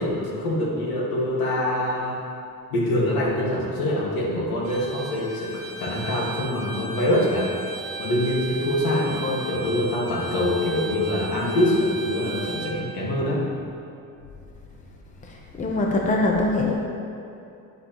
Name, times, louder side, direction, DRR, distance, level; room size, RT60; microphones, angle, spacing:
voice 1, 0.0-2.2 2.7-7.5 8.0-13.5, left 1 dB, 75° left, -3 dB, 1.8 m, -24 dB
Bowed string instrument, 4.6-12.8, right 3 dB, 90° right, 1.7 m, -36 dB
voice 2, 15.6-16.7, left 2 dB, 20° left, -1 dB, 0.7 m, -22 dB
9.6 x 7.7 x 3.0 m, 2.7 s
cardioid pair, 165°, 36 cm